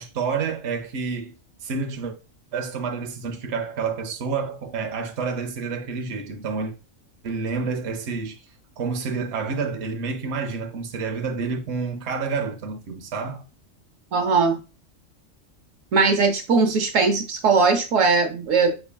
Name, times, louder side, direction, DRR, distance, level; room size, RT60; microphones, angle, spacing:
voice 1, 0.0-1.3 1.6-2.1 2.5-6.7 7.2-8.4 8.8-13.4, right 5 dB, 65° right, 0.9 m, -29 dB
voice 2, 14.1-14.6 15.9-18.7, right 4 dB, 80° right, 1.2 m, -19 dB
5.5 x 3.4 x 2.2 m
omnidirectional pair, 1.3 m